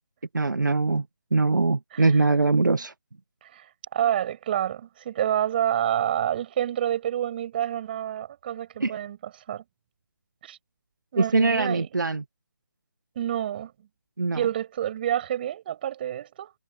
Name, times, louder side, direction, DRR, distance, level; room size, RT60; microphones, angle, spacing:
voice 1, 0.3-1.0 1.3-2.9 8.8-9.0 11.2-12.2 14.2-14.4, right 3 dB, 65° right, 1.6 m, -22 dB
voice 2, 1.9-2.3 3.4-9.6 10.4-10.6 11.1-11.9 13.2-13.7 14.3-16.5, right 11 dB, 30° right, 7.1 m, -28 dB
figure-of-eight pair, 150°, 11 cm